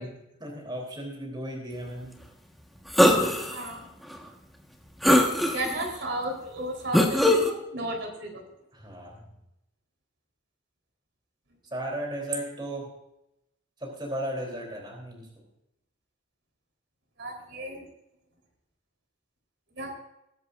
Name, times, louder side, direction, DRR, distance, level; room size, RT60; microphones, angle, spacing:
voice 1, 0.0-2.2 8.7-9.2 11.7-12.9 13.8-15.3, right 1 dB, 20° right, 0 dB, 3.4 m, -35 dB
sound 1, 2.9-3.5 4.1-4.2 5.0-5.8 6.9-7.5, left 1 dB, ahead, 1.4 m, -20 dB
voice 2, 3.5-3.9 5.5-8.4 17.2-17.8 19.8-19.9, right 1 dB, 65° right, 1 dB, 3.9 m, -33 dB
21.0 x 11.0 x 2.6 m, 0.85 s
head